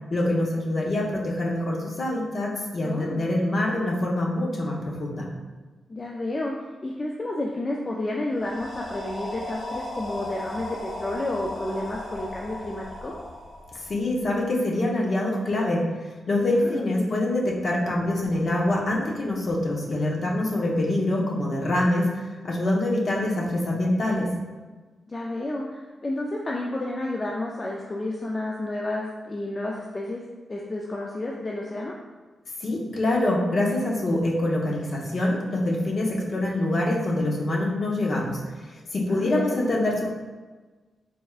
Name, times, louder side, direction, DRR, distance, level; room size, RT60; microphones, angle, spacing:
voice 1, 0.1-5.3 13.9-15.8 16.3-22.1 22.4-24.3 32.6-38.4 38.9-40.1, left 1 dB, 45° left, -2 dB, 0.7 m, -25 dB
voice 2, 2.8-3.3 5.9-6.5 6.8-13.2 16.5-17.2 25.1-30.2 30.5-32.0 39.1-39.7, left 1 dB, 25° left, -2 dB, 0.3 m, -31 dB
sound 1, 8.3-14.3, left 1 dB, 65° left, 1.1 m, -36 dB
4.1 x 3.4 x 2.4 m, 1.3 s
wide cardioid pair, 145°, 0 cm